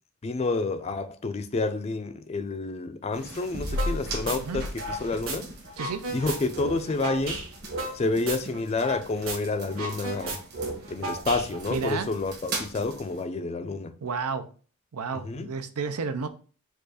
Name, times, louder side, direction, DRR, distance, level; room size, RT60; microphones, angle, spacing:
voice 1, 0.2-5.5 6.1-7.4 7.9-10.4 10.9-14.0 15.2-15.5, left 3 dB, 30° left, 0.3 m, -29 dB
sound 1, 3.1-13.2, right 1 dB, 45° right, 1.2 m, -38 dB
sound 2, 3.8-4.0 4.3-5.4 5.7-9.0 9.3-9.4 9.7-11.8, right 2 dB, 60° right, 1.6 m, -33 dB
voice 2, 5.8-6.1 11.7-12.1 14.0-14.5 14.9-16.3, right 5 dB, 90° right, 0.5 m, -31 dB
4.5 x 2.4 x 4.8 m
head